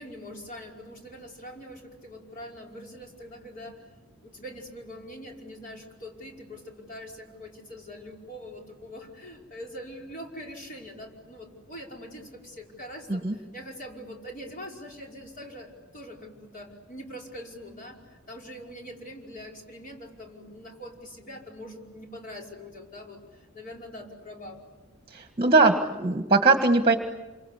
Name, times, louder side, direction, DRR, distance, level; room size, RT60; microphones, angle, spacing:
voice 1, 0.0-3.8 4.2-24.6, equal, 40° left, 0 dB, 5.3 m, -43 dB
voice 2, 25.1-26.9, right 3 dB, 25° right, 6 dB, 1.6 m, -21 dB
28.5 x 25.5 x 8.2 m, 1.1 s
head